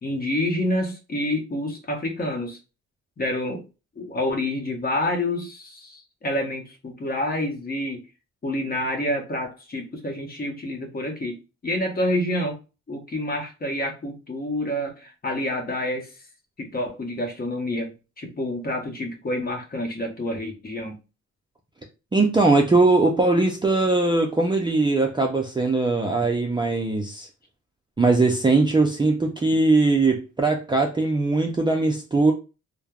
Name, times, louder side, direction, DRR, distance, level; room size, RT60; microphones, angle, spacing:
voice 1, 0.0-2.6 3.2-3.6 4.0-8.0 8.4-11.4 11.6-12.6 12.9-16.1 16.6-21.0, left 1 dB, 30° left, 0.9 m, -28 dB
voice 2, 22.1-27.3 28.0-32.3, right 3 dB, 15° right, 0.4 m, -20 dB
3.2 x 2.1 x 2.3 m
cardioid pair, 90°, 30 cm